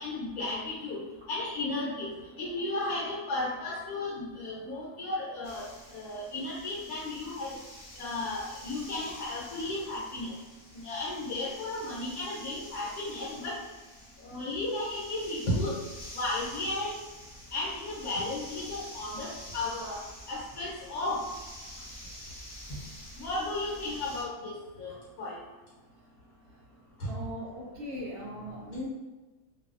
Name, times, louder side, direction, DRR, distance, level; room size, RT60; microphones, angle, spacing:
voice 1, 0.0-7.5 7.9-10.4 10.7-13.6 14.2-15.8 16.1-16.9 17.5-21.2 23.2-25.4 27.0-27.1, left 2 dB, 80° left, -6 dB, 1.1 m, -34 dB
sound 1, 5.4-24.2, equal, 40° left, 0.8 m, -47 dB
voice 2, 27.1-28.9, equal, 65° right, -4 dB, 0.6 m, -40 dB
2.6 x 2.2 x 2.5 m, 1.2 s
omnidirectional pair, 1.5 m